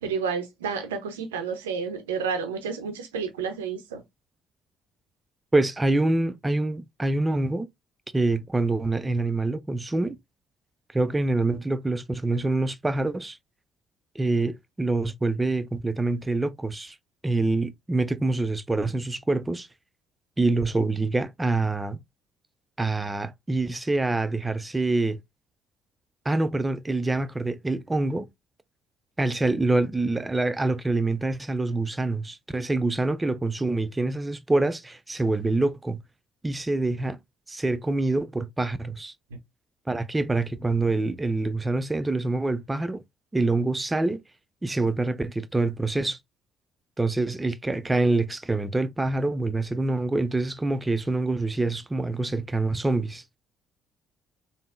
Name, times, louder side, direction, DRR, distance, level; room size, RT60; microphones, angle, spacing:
voice 1, 0.0-4.0 39.3-39.4, right 6 dB, 80° right, 0.5 m, -30 dB
voice 2, 5.5-7.7 8.1-10.2 10.9-13.4 14.2-17.0 17.2-19.7 20.4-22.0 22.8-25.2 26.3-28.3 29.2-36.0 36.4-37.2 37.5-39.1 39.9-43.0 43.3-44.2 44.6-46.2 47.0-53.2, right 2 dB, 20° right, 0.4 m, -26 dB
3.5 x 2.0 x 2.3 m
figure-of-eight pair, 45°, 0 cm